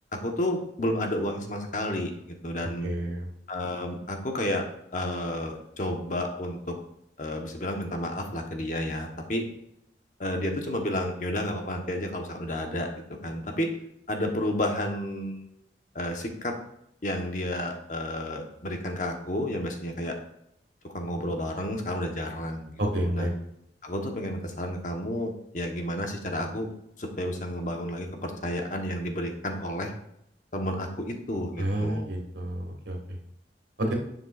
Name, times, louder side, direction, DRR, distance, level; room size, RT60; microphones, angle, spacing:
voice 1, 0.1-2.9 3.5-4.6 4.9-6.8 7.2-9.5 10.2-12.9 13.2-13.7 14.1-15.5 15.9-16.6 17.0-20.2 20.8-23.3 23.8-26.7 27.0-29.9 30.5-32.1, left 1 dB, 45° left, 3 dB, 1.1 m, -31 dB
voice 2, 2.8-3.3 22.8-23.3 31.6-33.0 33.8-33.9, right 1 dB, 80° right, 1 dB, 1.9 m, -29 dB
10.5 x 7.1 x 2.4 m, 0.78 s
head